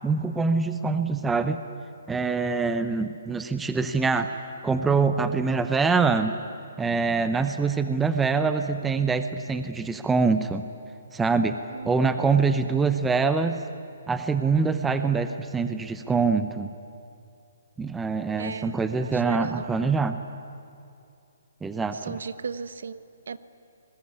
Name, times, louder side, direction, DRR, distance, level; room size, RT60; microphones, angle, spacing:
voice 1, 0.0-1.6 2.1-4.3 4.6-6.3 6.8-10.6 11.1-11.6 11.8-13.6 14.1-16.7 17.8-20.2 21.6-22.2, right 4 dB, 5° right, 9 dB, 0.7 m, -24 dB
voice 2, 11.7-12.3 18.4-19.7 21.9-23.4, right 5 dB, 70° right, 14 dB, 1.2 m, -37 dB
26.5 x 20.5 x 9.7 m, 2.5 s
hypercardioid pair, 175°, 0 cm